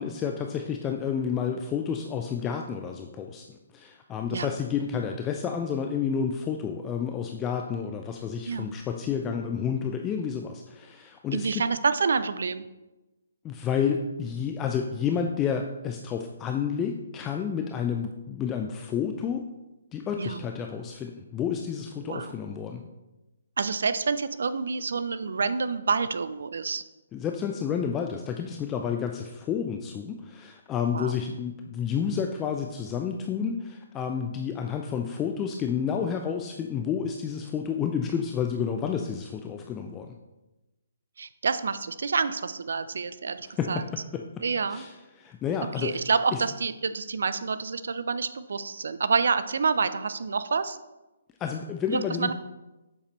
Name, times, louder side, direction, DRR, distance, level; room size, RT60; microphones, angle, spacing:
voice 1, 0.0-3.5 3.7-11.6 13.4-19.4 19.9-22.8 27.1-40.2 43.4-44.2 44.7-46.0 46.3-46.4 51.4-52.3, left 7 dB, 20° left, 4 dB, 0.4 m, -30 dB
voice 2, 11.3-12.6 20.2-20.4 22.0-22.3 23.6-26.8 30.9-31.1 41.2-43.8 44.4-44.8 45.8-50.8 51.9-52.3, right 5 dB, 65° right, 13 dB, 0.5 m, -28 dB
7.8 x 6.6 x 3.1 m, 1.0 s
figure-of-eight pair, 135°, 0 cm